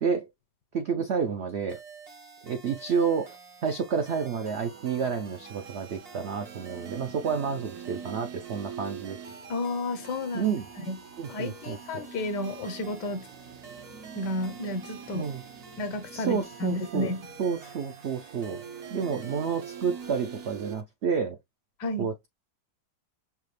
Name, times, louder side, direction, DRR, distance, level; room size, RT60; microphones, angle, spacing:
voice 1, 0.7-1.8 2.4-3.4 3.6-9.2 10.3-10.7 11.2-12.1 15.1-15.4 16.1-17.1 17.4-18.6 18.9-21.4 22.0-22.3, right 6 dB, 90° right, 0.5 m, -30 dB
sound 1, 1.7-20.8, right 4 dB, 40° right, 0.5 m, -49 dB
sound 2, 3.8-20.7, right 7 dB, 70° right, 0.9 m, -45 dB
voice 2, 9.5-10.5 10.9-11.0 11.3-13.3 14.1-15.3 15.8-17.3 21.8-22.1, left 1 dB, 80° left, 1.5 m, -31 dB
5.8 x 2.1 x 3.2 m
omnidirectional pair, 1.8 m